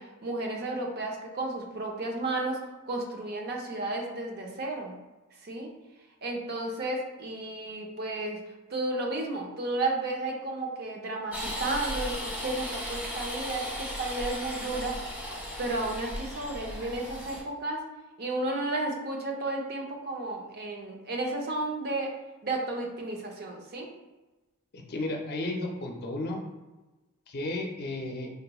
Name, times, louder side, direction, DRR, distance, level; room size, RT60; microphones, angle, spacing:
voice 1, 0.0-2.6 2.9-4.9 5.4-5.7 6.2-8.4 8.7-14.9 15.6-17.8 18.2-22.1 22.4-23.9, right 2 dB, 50° right, 1 dB, 0.6 m, -33 dB
sound 1, 11.3-17.4, equal, 5° right, 0.6 m, -36 dB
voice 2, 24.7-26.4 27.3-28.3, left 2 dB, 45° left, 1 dB, 0.5 m, -33 dB
3.8 x 2.9 x 2.2 m, 1.1 s
head